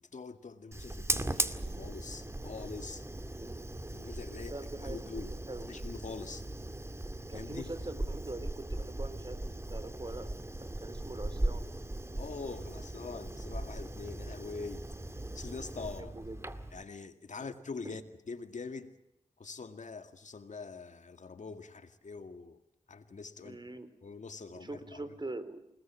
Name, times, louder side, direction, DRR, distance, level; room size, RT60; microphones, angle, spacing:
voice 1, 0.0-3.1 3.9-5.3 5.6-6.4 7.3-7.7 12.2-14.9 15.3-16.1 16.7-18.0 18.3-18.9 19.4-22.6 22.9-23.6 24.0-25.0, left 4 dB, 75° left, 2.1 m, -44 dB
Fire, 0.7-16.8, right 1 dB, 20° right, 2.0 m, -38 dB
voice 2, 3.3-3.7 4.5-5.7 7.3-10.3 10.6-11.7 15.8-16.4 17.3-17.5 17.8-18.0 23.4-23.9 24.5-25.7, right 2 dB, 35° right, 4.0 m, -43 dB
29.5 x 19.5 x 7.5 m
wide cardioid pair, 65°, 13 cm